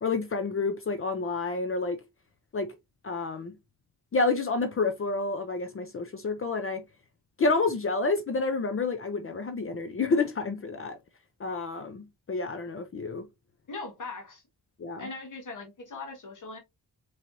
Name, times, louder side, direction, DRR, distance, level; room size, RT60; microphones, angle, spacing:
voice 1, 0.0-2.0 2.5-2.7 3.0-3.5 4.1-6.8 7.4-11.0 11.4-13.2 14.8-15.1, left 3 dB, 40° left, 0.5 m, -29 dB
voice 2, 13.7-14.4 15.0-16.6, left 3 dB, 55° left, 1.4 m, -40 dB
4.4 x 3.2 x 2.6 m
wide cardioid pair, 105°, 36 cm